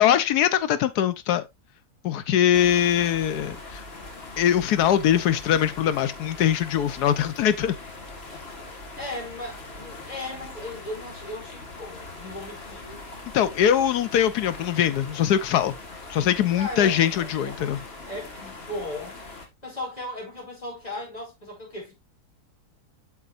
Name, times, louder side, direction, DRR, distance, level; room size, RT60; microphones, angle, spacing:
voice 1, 0.0-1.4 2.0-3.8 4.4-7.8 13.3-15.8 16.1-17.8, left 10 dB, 85° left, 1.3 m, -22 dB
sound 1, 2.5-19.5, left 2 dB, 40° left, 1.8 m, -41 dB
voice 2, 9.0-13.0 16.6-17.8 18.0-19.2 19.6-21.9, left 1 dB, 25° left, 4.8 m, -37 dB
8.5 x 6.9 x 2.5 m
omnidirectional pair, 1.7 m